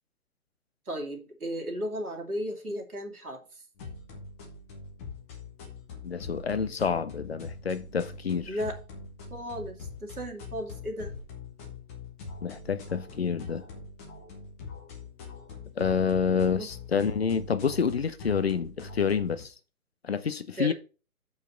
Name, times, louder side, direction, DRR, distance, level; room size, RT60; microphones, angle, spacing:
voice 1, 0.9-3.6 8.5-8.8 9.3-11.1 16.6-16.7 20.6-20.7, equal, 75° right, 2.5 m, -35 dB
sound 1, 3.8-19.4, left 4 dB, 10° left, 0.8 m, -43 dB
voice 2, 6.0-8.5 12.4-13.6 15.8-19.5 20.0-20.7, left 6 dB, 45° left, 0.7 m, -28 dB
6.7 x 5.3 x 5.7 m
figure-of-eight pair, 135°, 45 cm